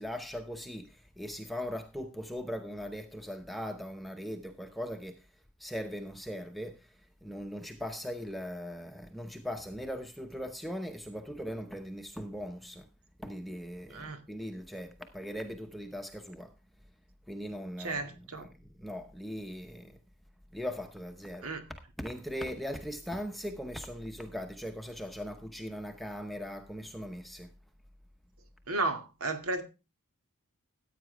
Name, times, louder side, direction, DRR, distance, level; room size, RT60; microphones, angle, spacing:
voice 1, 0.0-5.2 5.6-6.8 7.2-12.9 13.2-16.5 17.3-18.5 18.8-20.0 20.5-21.5 22.0-27.5, equal, ahead, 0.8 m, -39 dB
voice 2, 17.8-18.4 21.4-21.6 28.7-29.6, right 3 dB, 80° right, 2.1 m, -33 dB
14.5 x 8.8 x 3.4 m
head